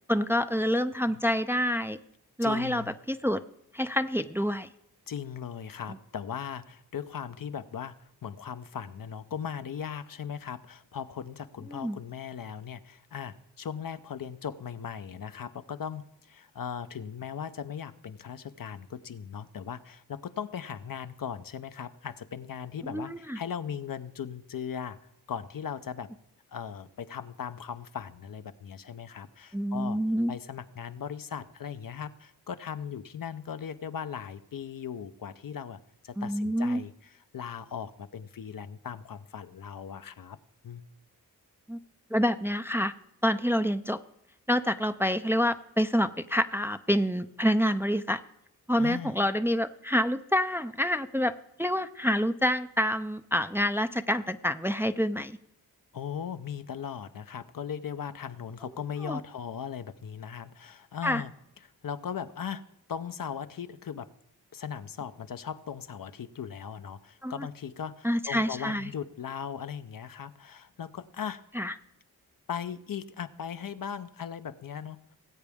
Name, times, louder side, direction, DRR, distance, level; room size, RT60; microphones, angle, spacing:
voice 1, 0.1-2.0 2.4-3.4 3.7-4.7 11.7-12.0 22.8-23.4 29.5-30.3 36.2-36.8 41.7-41.8 42.1-42.9 43.2-44.0 44.5-48.2 48.7-51.3 51.6-55.4 59.0-59.2 61.0-61.2 67.2-67.5 68.0-68.9 71.5-71.7, equal, 5° right, 10 dB, 0.5 m, -27 dB
voice 2, 2.4-2.9 5.1-8.0 8.2-25.0 25.3-26.1 26.5-30.0 30.3-35.8 36.0-40.4 40.6-40.8 48.8-49.1 55.9-61.3 61.6-64.1 64.5-71.4 72.5-75.2, left 8 dB, 60° left, 11 dB, 0.7 m, -38 dB
19.0 x 8.1 x 3.5 m, 0.79 s
cardioid pair, 45°, 38 cm